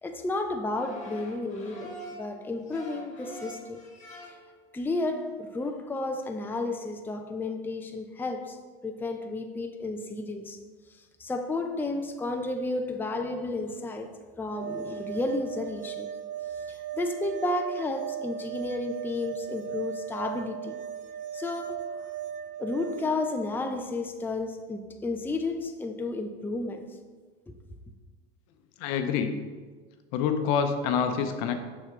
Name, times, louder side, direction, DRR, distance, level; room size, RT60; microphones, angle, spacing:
voice 1, 0.0-3.8 4.2-4.3 4.7-8.6 8.8-10.6 10.9-16.1 16.5-20.7 21.3-22.0 22.6-27.0 27.5-27.6, left 2 dB, 5° left, 0.6 m, -32 dB
sound 1, 0.7-2.3 2.7-4.6 4.9-5.3 5.6-5.7 5.9-6.2, equal, 25° left, 1.8 m, -44 dB
sound 2, 14.5-23.1, right 9 dB, 75° right, 0.5 m, -37 dB
voice 2, 28.8-29.3 30.1-31.6, left 7 dB, 65° left, 0.8 m, -26 dB
6.4 x 6.1 x 3.7 m
hypercardioid pair, 85°, 29 cm